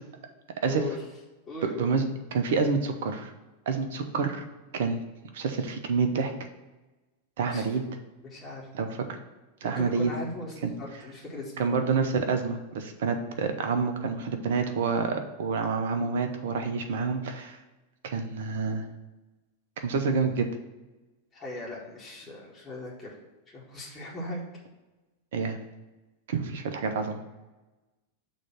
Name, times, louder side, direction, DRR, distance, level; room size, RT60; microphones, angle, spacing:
voice 1, 0.6-0.9 1.5-1.9 7.4-7.6 8.2-8.7 9.6-11.7 21.3-23.1 23.5-24.4, left 1 dB, 20° left, -5 dB, 1.7 m, -38 dB
voice 2, 1.6-3.3 3.7-4.4 4.7-5.0 5.3-6.3 7.4-7.8 8.7-9.0 9.6-10.1 10.6-10.7 11.6-17.6 18.0-18.9 19.8-20.5 25.3-25.6 26.3-27.2, right 5 dB, 55° right, 6 dB, 0.8 m, -28 dB
6.4 x 3.2 x 5.7 m, 1.1 s
figure-of-eight pair, 90°, 0 cm